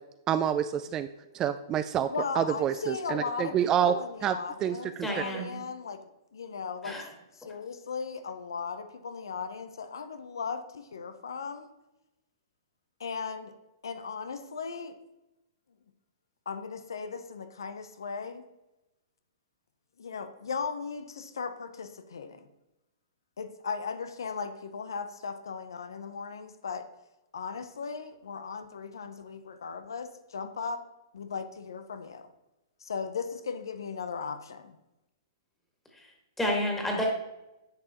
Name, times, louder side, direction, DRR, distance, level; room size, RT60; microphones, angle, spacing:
voice 1, 0.3-1.1 1.3-2.1 2.4-5.4, right 10 dB, 25° right, 11 dB, 0.3 m, -28 dB
voice 2, 2.1-7.0 7.3-11.7 13.0-13.5 13.8-15.0 16.5-18.5 20.0-22.5 23.4-26.8 27.3-30.8 31.1-32.3 32.8-34.8, left 5 dB, 80° left, 9 dB, 0.7 m, -37 dB
voice 3, 5.0-5.6 6.8-7.0 36.4-37.1, left 1 dB, 10° left, 0 dB, 1.9 m, -30 dB
9.9 x 5.5 x 2.9 m, 0.96 s
hypercardioid pair, 125°, 2 cm